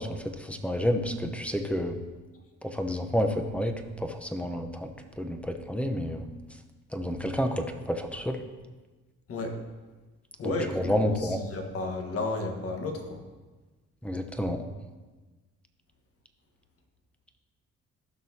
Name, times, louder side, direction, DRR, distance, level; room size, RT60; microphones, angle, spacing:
voice 1, 0.0-2.0 2.6-4.9 5.2-6.3 6.9-8.4 10.4-11.4 14.0-14.6, equal, 5° left, 6 dB, 0.8 m, -30 dB
voice 2, 10.4-13.2, left 2 dB, 50° left, 3 dB, 1.5 m, -33 dB
15.0 x 6.2 x 2.8 m, 1.3 s
cardioid pair, 90°, 30 cm